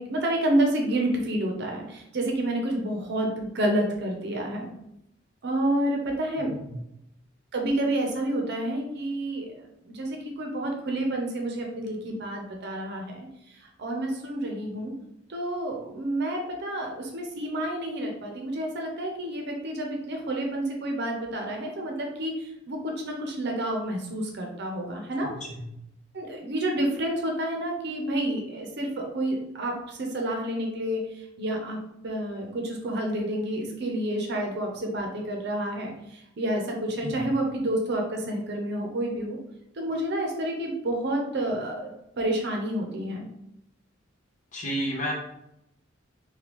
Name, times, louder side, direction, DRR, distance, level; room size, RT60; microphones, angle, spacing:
voice 1, 0.0-4.7 5.4-6.5 7.5-9.6 9.8-13.3 13.8-14.9 15.3-25.3 26.1-31.0 31.4-31.8 32.0-39.4 39.8-43.3, right 1 dB, 55° right, 1 dB, 0.6 m, -29 dB
voice 2, 6.4-6.8 25.2-25.8 37.0-37.1 44.5-45.1, equal, 40° left, -1 dB, 0.8 m, -32 dB
3.4 x 2.3 x 3.0 m, 0.81 s
head